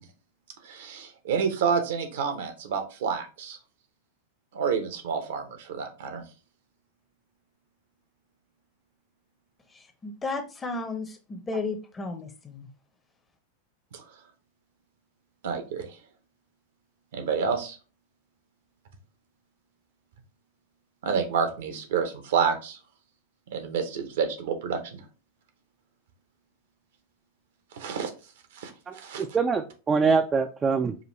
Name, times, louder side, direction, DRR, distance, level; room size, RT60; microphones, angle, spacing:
voice 1, 0.6-3.6 4.5-6.2 13.9-14.0 15.4-15.9 17.1-17.8 21.0-22.8 23.5-25.0 27.7-28.1 28.6-29.2, right 6 dB, 55° right, 6 dB, 0.7 m, -29 dB
voice 2, 9.7-12.7, left 3 dB, 15° left, 7 dB, 0.7 m, -34 dB
voice 3, 28.9-30.9, right 5 dB, 20° right, 6 dB, 0.3 m, -24 dB
4.9 x 2.4 x 3.1 m, 0.34 s
figure-of-eight pair, 90°, 0 cm